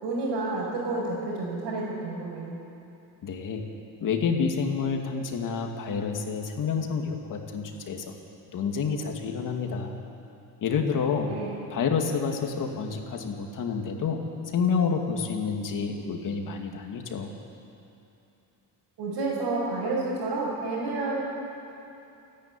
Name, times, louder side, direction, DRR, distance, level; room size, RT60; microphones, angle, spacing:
voice 1, 0.0-2.6 11.3-11.6 19.0-21.2, right 3 dB, 65° right, -8 dB, 6.2 m, -30 dB
voice 2, 3.2-3.7 4.0-8.1 8.5-9.9 10.6-11.3 11.7-14.2 14.5-17.3, left 5 dB, 50° left, 3 dB, 2.5 m, -28 dB
28.5 x 10.5 x 9.9 m, 2.9 s
cardioid pair, 135°, 41 cm